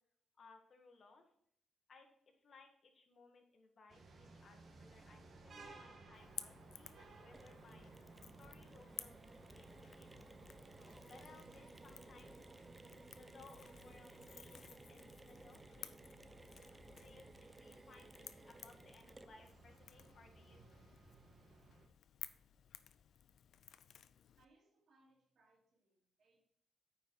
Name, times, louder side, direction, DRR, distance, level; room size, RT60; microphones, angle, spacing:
voice 1, 0.4-1.3 1.9-7.9 8.4-10.1 10.8-12.4 13.2-14.6 14.9-16.0 16.9-20.6, left 4 dB, 55° left, 3 dB, 1.7 m, -63 dB
sound 1, 3.9-21.9, right 3 dB, 50° right, 1.5 m, -60 dB
Crackle / Crack, 6.1-24.4, left 9 dB, 75° left, 0.4 m, -57 dB
Mechanisms, 7.3-19.7, right 2 dB, 20° right, 0.6 m, -60 dB
voice 2, 24.4-26.4, right 2 dB, 70° right, -1 dB, 2.9 m, -73 dB
8.9 x 5.3 x 4.7 m, 0.68 s
cardioid pair, 85°, 0 cm